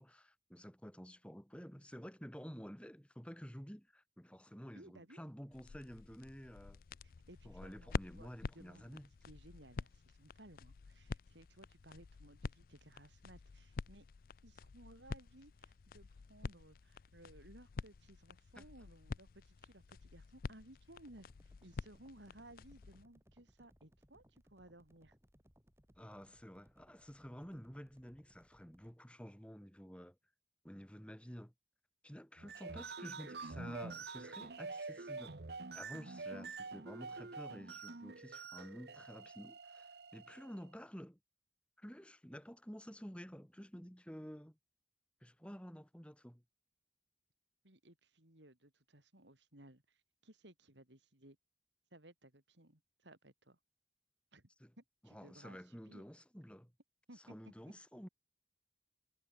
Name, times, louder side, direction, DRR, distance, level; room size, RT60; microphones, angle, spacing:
voice 1, 0.0-6.8 7.5-9.1 18.6-18.7 26.0-30.2 30.6-31.5 32.0-35.4 35.7-41.2 41.8-44.6 45.2-46.4 54.6-54.7 55.0-56.7 57.2-58.1, equal, 5° left, 3.6 m, -51 dB
voice 2, 4.7-5.2 7.0-9.0 9.3-14.1 14.4-25.2 47.6-51.4 51.9-53.6 54.3-54.5 54.8-56.0 57.1-57.3 57.7-57.8, right 1 dB, 80° right, 6.3 m, -60 dB
sound 1, 5.5-23.0, left 4 dB, 50° left, 0.4 m, -48 dB
sound 2, 21.1-29.0, equal, 15° right, 5.9 m, -69 dB
sound 3, 32.4-40.6, right 4 dB, 65° right, 1.1 m, -47 dB
head